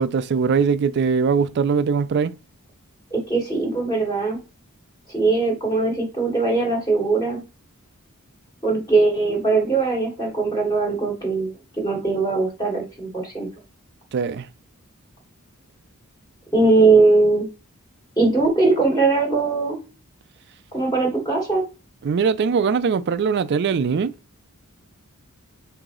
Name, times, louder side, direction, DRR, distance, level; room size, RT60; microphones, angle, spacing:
voice 1, 0.0-2.3 14.1-14.5 22.0-24.1, right 5 dB, 50° right, 0.3 m, -21 dB
voice 2, 3.1-4.4 5.1-7.4 8.6-11.5 11.8-13.5 16.5-17.5 18.2-19.8 20.7-21.6, right 3 dB, 15° left, 1.5 m, -20 dB
4.8 x 2.6 x 3.8 m
head